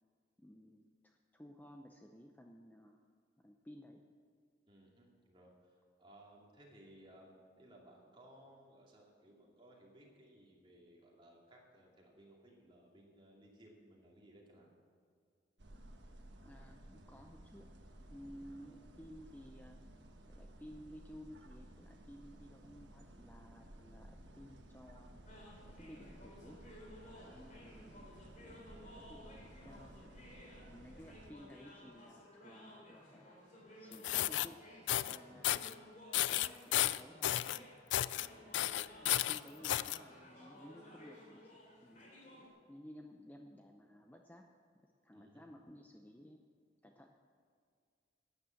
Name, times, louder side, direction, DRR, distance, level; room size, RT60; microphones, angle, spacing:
voice 1, 0.4-3.0 3.4-4.0 16.4-17.7 18.1-19.8 20.3-25.3 25.7-26.6 27.2-28.1 28.4-33.4 33.8-34.6 35.1-35.9 36.3-37.7 39.0-42.1 42.7-44.5 44.8-46.4 46.8-47.2, equal, 10° left, 3 dB, 0.6 m, -56 dB
voice 2, 4.7-5.7 6.0-14.7 18.3-18.5 27.1-27.4 35.3-35.5 45.1-45.4, right 1 dB, 30° right, -2 dB, 2.5 m, -61 dB
sound 1, 15.6-31.3, right 1 dB, 75° right, 1.4 m, -56 dB
sound 2, 25.3-42.5, left 1 dB, 45° left, 3.2 m, -56 dB
sound 3, 33.9-34.5 34.9-35.2 35.4-35.7 36.1-37.6 37.9-38.3 38.5-40.0, left 14 dB, 75° left, 0.3 m, -33 dB
12.0 x 9.6 x 7.7 m, 2.2 s
head